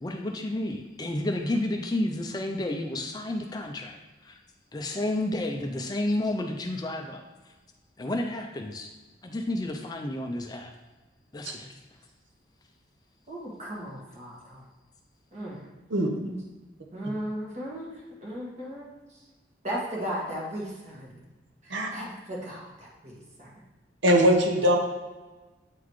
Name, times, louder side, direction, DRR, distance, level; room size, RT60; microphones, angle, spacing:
voice 1, 0.0-4.0 4.2-4.4 4.7-7.5 8.0-8.9 9.2-10.7 11.3-11.8, left 1 dB, 20° left, 3 dB, 0.4 m, -31 dB
voice 2, 13.3-14.6 15.3-15.6 16.2-16.4 16.9-19.3 19.6-21.2 21.6-23.5, equal, 35° right, -4 dB, 1.5 m, -36 dB
voice 3, 24.0-24.8, equal, 80° right, 1 dB, 0.8 m, -20 dB
8.2 x 3.9 x 3.1 m, 1.2 s
head